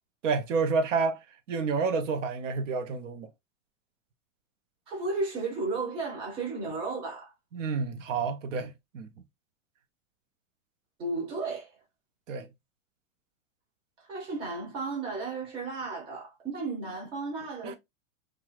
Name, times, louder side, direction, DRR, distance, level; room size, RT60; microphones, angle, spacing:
voice 1, 0.2-1.2 1.5-3.3 7.5-9.1 12.3-12.5 17.6-17.8, right 4 dB, 70° right, 0.6 m, -29 dB
voice 2, 4.9-7.3 11.0-11.7 14.0-17.8, right 3 dB, 15° right, 0.6 m, -34 dB
2.3 x 2.3 x 3.0 m
supercardioid pair, 165°, 39 cm